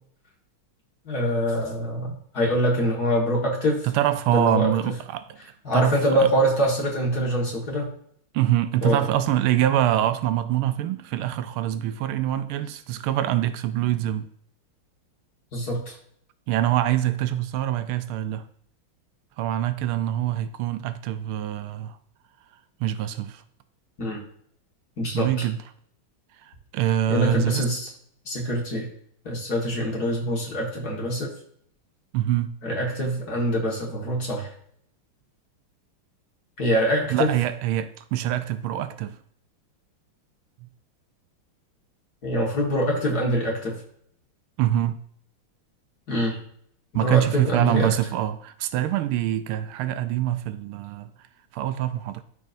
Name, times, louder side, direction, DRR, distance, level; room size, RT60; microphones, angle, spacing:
voice 1, 1.1-3.8 4.3-4.7 5.6-7.9 8.8-9.0 15.5-15.9 24.0-24.2 25.0-25.3 27.1-27.9 28.3-28.9 29.2-31.3 32.6-34.5 36.6-37.3 42.2-43.8 46.1-46.4 46.9-47.9, equal, 45° left, 2.2 m, -24 dB
voice 2, 3.8-5.4 5.7-6.3 8.3-14.3 16.5-18.4 19.4-22.0 22.8-23.4 25.1-25.6 26.4-27.6 32.1-32.5 37.1-39.2 40.6-40.7 44.6-45.0 46.9-51.1 51.5-52.2, right 12 dB, 80° right, 1.4 m, -25 dB
12.5 x 4.3 x 2.6 m
omnidirectional pair, 2.3 m